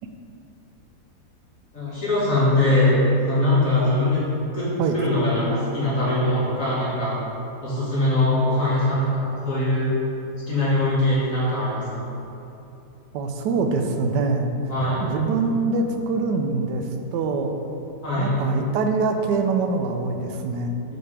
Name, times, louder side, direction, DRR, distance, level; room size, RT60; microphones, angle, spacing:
voice 1, 1.7-4.2 4.5-7.1 7.6-9.9 10.5-12.0 14.7-15.1 18.0-18.4, left 1 dB, 55° left, -10 dB, 2.0 m, -22 dB
voice 2, 13.1-14.5 15.0-17.5 18.1-20.7, right 4 dB, 85° right, 5 dB, 1.2 m, -24 dB
6.5 x 5.4 x 3.3 m, 2.9 s
omnidirectional pair, 1.8 m